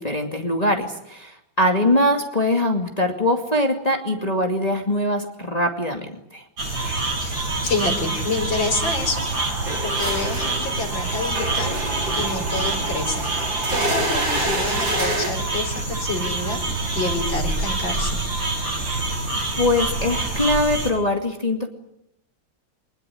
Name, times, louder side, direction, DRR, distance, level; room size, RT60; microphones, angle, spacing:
voice 1, 0.0-6.4 19.6-21.7, left 1 dB, 20° left, 3 dB, 2.5 m, -22 dB
sound 1, 6.6-20.9, right 2 dB, 85° right, 7.4 m, -26 dB
voice 2, 7.2-9.2 9.5-11.8 12.1-16.6 16.9-18.2, left 3 dB, 85° left, 3 dB, 5.5 m, -28 dB
sound 2, 9.7-15.3, right 1 dB, 65° right, 4.4 m, -28 dB
24.5 x 20.5 x 10.0 m, 0.78 s
omnidirectional pair, 2.0 m